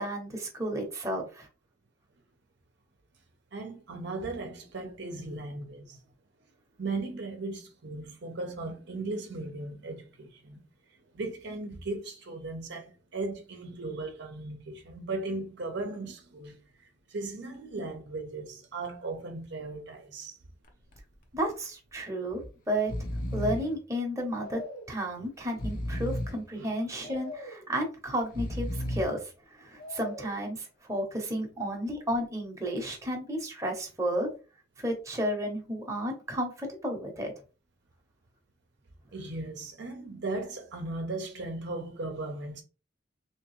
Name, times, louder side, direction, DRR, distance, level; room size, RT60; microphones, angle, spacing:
voice 1, 0.0-1.5 21.3-22.9 23.3-24.6 24.9-34.3 34.8-37.3, equal, 15° right, 0.9 m, -32 dB
voice 2, 3.5-6.0 6.4-6.5 6.8-10.6 11.1-20.4 26.5-26.7 39.1-42.6, right 2 dB, 60° right, 0.7 m, -37 dB
Breathing, 20.6-21.0 21.3-21.4 22.3-22.5 22.7-23.8 24.3-25.0 25.4-26.5 27.0-27.7 28.2-29.2 29.8-30.4, left 1 dB, 50° left, 0.8 m, -35 dB
3.4 x 2.8 x 3.1 m
head